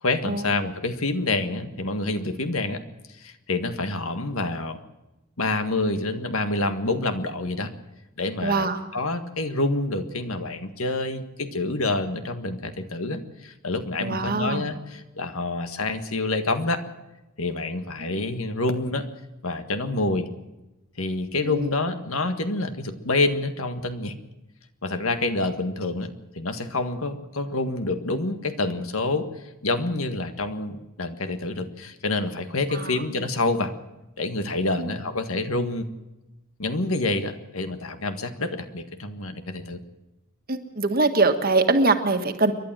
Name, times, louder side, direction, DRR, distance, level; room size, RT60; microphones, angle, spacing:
voice 1, 0.0-2.8 3.1-4.8 5.4-7.7 8.2-16.8 17.4-19.1 19.4-20.3 21.0-24.1 24.8-26.1 26.4-29.3 29.6-33.7 34.2-35.9 36.6-39.8, left 2 dB, 75° left, 8 dB, 1.8 m, -27 dB
voice 2, 8.4-8.8 14.0-14.7 18.0-18.3 21.4-21.7 32.7-32.9 34.8-34.9 40.5-42.5, right 3 dB, 40° right, 7 dB, 1.6 m, -23 dB
29.0 x 11.5 x 7.6 m, 1.0 s
head